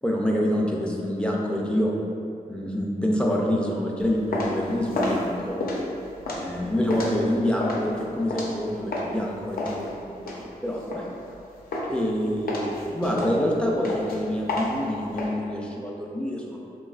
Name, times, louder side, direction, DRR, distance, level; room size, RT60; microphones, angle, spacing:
voice 1, 0.0-1.9 2.5-5.6 6.3-11.0 11.9-16.6, equal, 5° left, -2 dB, 0.4 m, -26 dB
sound 1, 4.0-9.2 9.6-11.4 11.7-12.1 12.5-15.3, left 2 dB, 75° left, 0.5 m, -30 dB
3.3 x 2.3 x 2.3 m, 2.5 s
cardioid pair, 55°, 16 cm